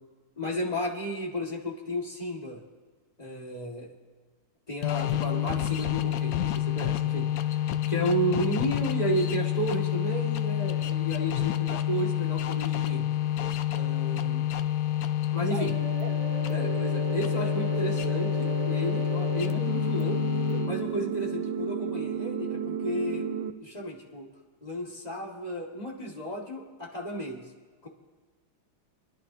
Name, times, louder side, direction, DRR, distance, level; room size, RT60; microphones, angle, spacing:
voice 1, 0.4-2.6 3.2-3.9 4.7-7.6 7.9-13.1 13.7-14.4 15.3-15.8 16.5-20.2 20.6-23.3 23.6-24.3 24.6-27.5 27.8-27.9, right 1 dB, 20° left, -2 dB, 1.8 m, -33 dB
sound 1, 4.8-21.0, left 12 dB, 75° left, 0.8 m, -28 dB
sound 2, 15.5-23.5, right 8 dB, 90° right, 1.5 m, -33 dB
29.5 x 11.0 x 2.8 m, 1.5 s
omnidirectional pair, 2.2 m